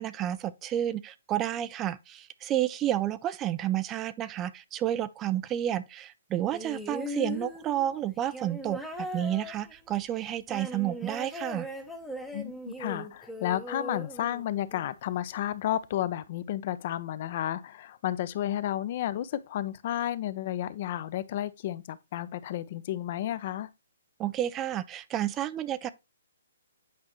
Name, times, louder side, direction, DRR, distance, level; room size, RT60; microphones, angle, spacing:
voice 1, 0.0-11.7 24.2-25.9, right 12 dB, 15° right, 0.3 m, -30 dB
sound 1, 6.5-14.9 15.9-16.0, left 1 dB, ahead, 0.7 m, -39 dB
voice 2, 12.3-23.7, left 12 dB, 35° left, 0.6 m, -32 dB
8.5 x 5.4 x 3.0 m
hypercardioid pair, 170°, 0 cm